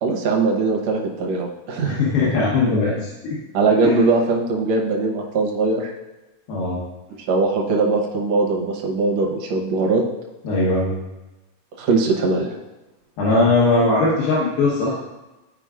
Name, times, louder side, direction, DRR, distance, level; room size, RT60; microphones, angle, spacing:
voice 1, 0.0-2.0 3.5-5.9 7.3-10.0 11.8-12.6, right 3 dB, 65° right, 0 dB, 1.7 m, -20 dB
voice 2, 1.8-3.4 3.8-4.0 6.5-6.8 10.4-10.9 13.2-15.0, left 2 dB, 85° left, -6 dB, 3.0 m, -19 dB
14.5 x 4.9 x 2.4 m, 1.0 s
omnidirectional pair, 4.1 m